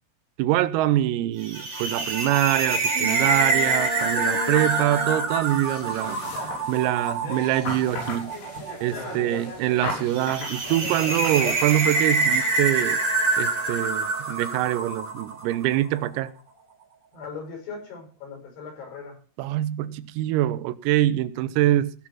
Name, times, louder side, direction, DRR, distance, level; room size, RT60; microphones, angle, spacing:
voice 1, 0.4-6.2 6.7-8.3 8.8-13.0 13.4-16.3 19.4-21.9, right 14 dB, 85° right, 3.5 m, -24 dB
sound 1, 1.4-15.7, right 3 dB, 35° right, 4.2 m, -26 dB
sound 2, 2.9-5.3, right 3 dB, 65° right, 1.5 m, -31 dB
sound 3, 5.5-11.5, left 2 dB, 75° left, 8.8 m, -36 dB
voice 2, 8.9-9.5 17.1-19.2, left 5 dB, 55° left, 7.7 m, -39 dB
17.5 x 6.2 x 7.4 m
omnidirectional pair, 6.0 m